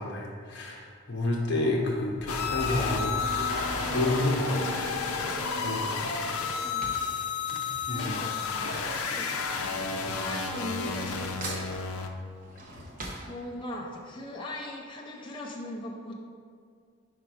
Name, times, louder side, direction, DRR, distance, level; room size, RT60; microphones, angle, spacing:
voice 1, 0.0-3.2 3.5-4.8 5.6-6.0 7.9-8.1 9.9-10.0, left 2 dB, 50° left, -1 dB, 0.9 m, -30 dB
Drawer open or close / Cutlery silverware, 1.4-1.8 2.6-8.5 8.8-11.2 11.4-13.9 14.4-14.5 14.7-14.8, right 2 dB, 40° right, 0.8 m, -45 dB
sound 1, 2.1-7.1, right 1 dB, 85° right, 1.2 m, -39 dB
sound 2, 2.3-12.1, left 5 dB, 80° left, 0.5 m, -31 dB
voice 2, 6.6-6.9 7.8-8.4 8.8-9.3 10.2-11.6 13.3-16.1, left 1 dB, 20° left, -1 dB, 0.5 m, -39 dB
5.0 x 4.6 x 4.8 m, 2.2 s
head